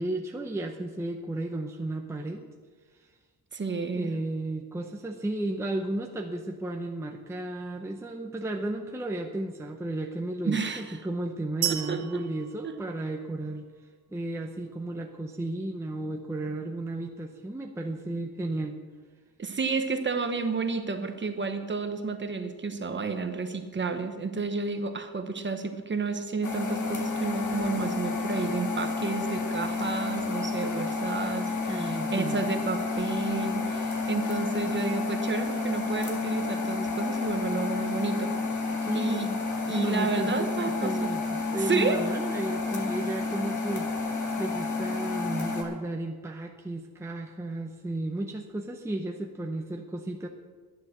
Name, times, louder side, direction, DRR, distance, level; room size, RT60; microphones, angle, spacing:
voice 1, 0.0-2.5 3.9-13.6 14.1-18.8 31.7-32.4 38.8-50.3, right 1 dB, 5° right, 2 dB, 0.7 m, -33 dB
voice 2, 3.5-4.1 10.4-11.0 11.6-12.2 12.6-12.7 19.4-38.4 38.9-39.3 39.7-41.1 41.6-42.0, right 4 dB, 30° right, 7 dB, 1.0 m, -31 dB
sound 1, 11.6-13.6, right 13 dB, 90° right, 0.9 m, -34 dB
sound 2, 26.4-45.6, left 3 dB, 45° left, 1.8 m, -30 dB
11.0 x 9.7 x 6.6 m, 1.5 s
wide cardioid pair, 150°, 40 cm